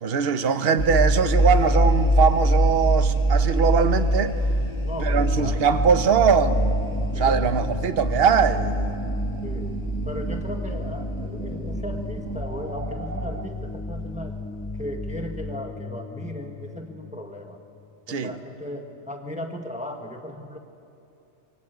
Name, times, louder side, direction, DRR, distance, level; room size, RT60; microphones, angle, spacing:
voice 1, 0.0-4.3 5.0-6.7 7.2-8.9 18.1-18.3, right 6 dB, 55° right, 1.2 m, -21 dB
sound 1, 0.8-15.5, right 1 dB, 50° left, 2.3 m, -25 dB
voice 2, 4.8-5.6 7.1-7.9 9.4-14.4 14.8-17.6 18.1-20.6, equal, 5° right, 1.5 m, -37 dB
sound 2, 4.9-13.4, right 6 dB, 80° right, 1.6 m, -39 dB
sound 3, 5.2-18.3, left 4 dB, 20° left, 0.3 m, -37 dB
26.0 x 23.0 x 8.1 m
omnidirectional pair, 1.2 m